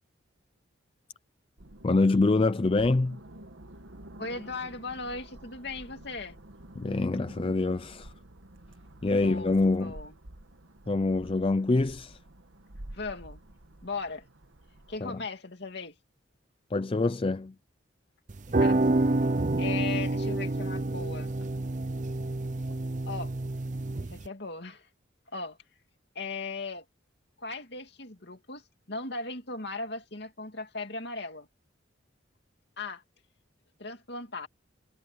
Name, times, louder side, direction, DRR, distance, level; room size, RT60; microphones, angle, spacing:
sound 1, 1.6-15.0, right 1 dB, 80° right, 1.6 m, -49 dB
voice 1, 1.8-3.2 6.8-8.1 9.0-10.0 10.9-12.2 15.0-15.2 16.7-17.5, left 3 dB, 25° left, 0.4 m, -25 dB
voice 2, 4.2-6.4 9.2-10.1 12.9-13.4 13.8-14.3 14.9-16.0 18.6-18.8 19.6-21.3 23.0-23.3 24.1-24.9 25.3-25.6 26.1-26.8 27.4-31.5 32.8-33.0 33.8-34.5, left 3 dB, 55° left, 2.7 m, -38 dB
sound 2, 18.3-24.3, right 2 dB, 40° right, 0.6 m, -28 dB
head